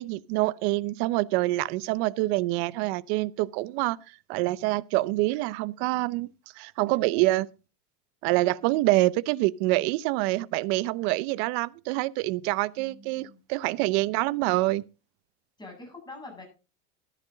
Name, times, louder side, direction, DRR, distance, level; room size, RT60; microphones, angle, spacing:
voice 1, 0.0-4.0 4.3-7.5 8.2-14.8, right 19 dB, 55° right, 0.7 m, -26 dB
voice 2, 12.8-13.4 15.6-16.4, left 2 dB, 10° left, 7.9 m, -45 dB
13.5 x 10.5 x 3.9 m
supercardioid pair, 120°, 38 cm